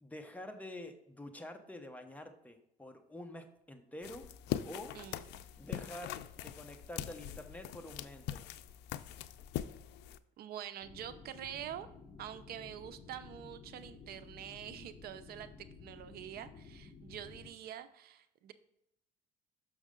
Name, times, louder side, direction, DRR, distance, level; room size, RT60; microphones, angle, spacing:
voice 1, 0.0-4.3 4.6-5.0 5.6-8.5, left 1 dB, 10° left, 5 dB, 0.9 m, -47 dB
sound 1, 4.0-10.2, left 12 dB, 85° left, 0.4 m, -42 dB
voice 2, 4.9-5.4 10.4-11.9 12.2-18.5, right 10 dB, 65° right, 12 dB, 0.5 m, -46 dB
sound 2, 10.8-17.5, left 4 dB, 40° left, 1.0 m, -54 dB
6.4 x 6.3 x 3.7 m, 0.77 s
cardioid pair, 110°, 17 cm